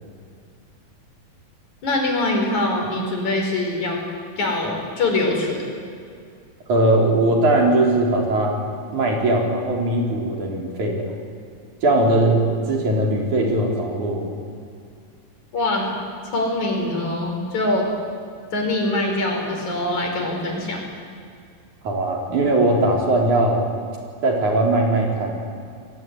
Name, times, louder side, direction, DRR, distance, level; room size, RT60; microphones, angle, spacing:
voice 1, 1.8-4.0 4.4-5.7 15.5-15.9 16.3-17.9 18.5-20.8, left 2 dB, 55° left, 1 dB, 6.3 m, -23 dB
voice 2, 6.7-8.6 8.9-11.0 11.8-12.4 12.7-14.3 21.8-23.6 24.2-25.4, right 2 dB, 55° right, 0 dB, 5.5 m, -19 dB
29.0 x 21.0 x 9.6 m, 2.3 s
omnidirectional pair, 4.1 m